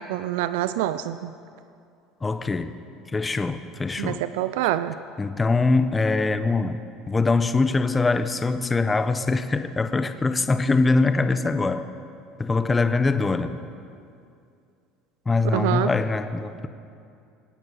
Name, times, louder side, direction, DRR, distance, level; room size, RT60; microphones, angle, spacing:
voice 1, 0.1-1.3 4.0-4.9 15.5-15.9, right 14 dB, 80° right, 13 dB, 0.4 m, -26 dB
voice 2, 2.2-2.7 3.1-4.2 5.2-6.8 7.1-11.8 12.4-13.6 15.3-16.7, left 3 dB, 20° left, 10 dB, 1.0 m, -23 dB
25.0 x 9.1 x 5.8 m, 2.5 s
supercardioid pair, 95°, 0 cm